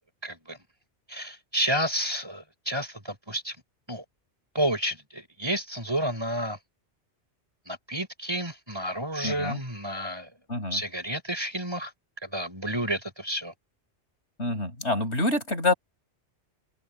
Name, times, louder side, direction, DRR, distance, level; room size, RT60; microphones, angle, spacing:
voice 1, 0.2-0.6 1.1-3.6 3.9-4.0 4.6-6.6 7.7-10.3 10.7-11.9 12.2-13.5, right 1 dB, 20° right, 5.2 m, -30 dB
voice 2, 9.2-9.6 10.5-10.8 14.4-15.7, left 2 dB, 70° left, 5.6 m, -27 dB
open air
omnidirectional pair, 1.2 m